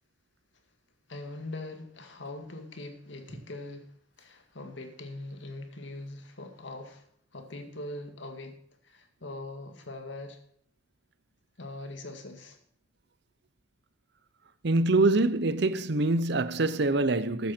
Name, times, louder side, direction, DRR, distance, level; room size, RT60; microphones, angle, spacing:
voice 1, 1.1-7.1 7.3-8.6 8.8-10.4 11.6-12.6, left 2 dB, 70° left, 2.1 m, -42 dB
voice 2, 14.6-17.5, right 2 dB, 60° right, 0.7 m, -25 dB
13.5 x 9.3 x 4.4 m
head